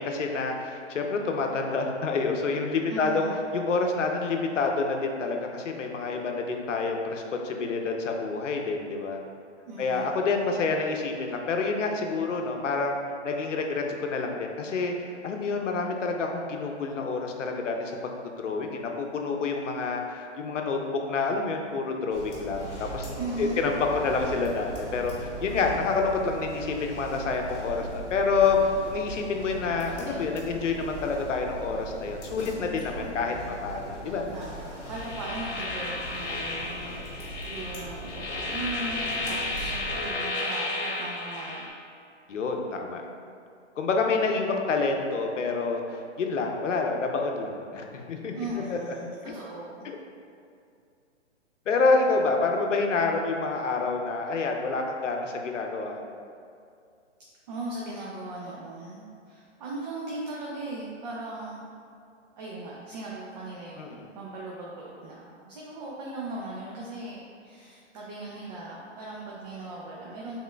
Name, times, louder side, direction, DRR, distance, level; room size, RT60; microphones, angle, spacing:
voice 1, 0.0-3.3 3.5-9.2 9.8-12.9 13.2-18.1 18.4-20.8 21.1-23.1 23.4-23.7 24.0-33.4 33.6-34.3 42.3-43.0 43.8-48.3 48.7-48.8 49.8-50.0 51.7-56.0 63.8-64.1, left 4 dB, 85° left, 2 dB, 0.7 m, -28 dB
voice 2, 2.9-3.4 9.7-10.0 23.2-23.7 33.0-33.8 34.3-37.0 37.4-41.7 48.3-49.9 57.5-61.7 62.4-70.4, right 2 dB, 35° right, -5 dB, 0.6 m, -38 dB
sound 1, 22.1-40.1, right 1 dB, 30° left, 1.3 m, -39 dB
sound 2, 34.9-41.7, left 2 dB, 60° left, 1.0 m, -33 dB
5.0 x 3.6 x 2.2 m, 2.4 s
hypercardioid pair, 140°, 36 cm